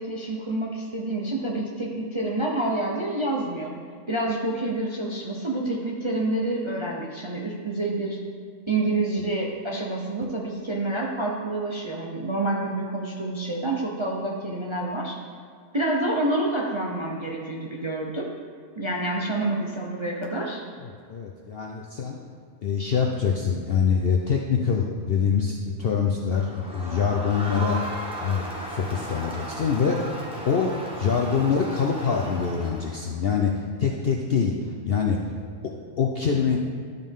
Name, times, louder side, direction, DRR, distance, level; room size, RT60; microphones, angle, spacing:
voice 1, 0.0-3.7 4.1-8.2 8.7-15.2 15.7-18.3 18.8-20.6, right 2 dB, 30° right, -2 dB, 0.5 m, -28 dB
voice 2, 21.1-22.2 22.6-27.8 28.2-30.2 30.5-34.6 34.9-35.2 36.0-36.6, left 6 dB, 60° left, 0 dB, 0.6 m, -24 dB
Crowd, 26.3-33.1, right 1 dB, 5° right, 0.9 m, -36 dB
12.0 x 5.3 x 3.6 m, 2.2 s
omnidirectional pair, 1.6 m